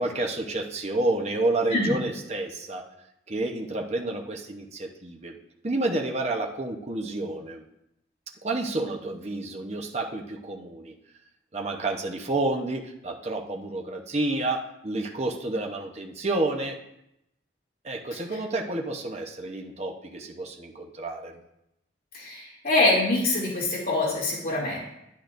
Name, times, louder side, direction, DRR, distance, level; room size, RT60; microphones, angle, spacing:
voice 1, 0.0-2.9 3.3-5.4 5.6-7.6 8.4-10.9 11.5-16.8 17.8-21.4, right 2 dB, 35° right, 1 dB, 0.9 m, -30 dB
voice 2, 22.1-24.8, left 2 dB, 50° left, -5 dB, 2.7 m, -24 dB
10.5 x 10.5 x 2.6 m, 0.82 s
head